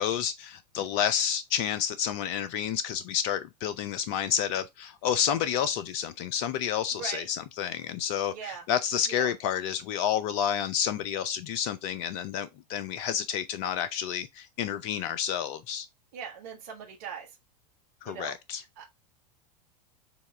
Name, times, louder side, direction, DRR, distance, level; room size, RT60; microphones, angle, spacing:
voice 1, 0.0-15.9 18.0-18.6, left 9 dB, 50° left, 0.5 m, -30 dB
voice 2, 8.3-8.6 9.1-9.3 16.1-17.3 18.0-18.4 18.8-18.9, right 7 dB, 65° right, 1.3 m, -40 dB
6.8 x 2.4 x 3.3 m
hypercardioid pair, 90°, 21 cm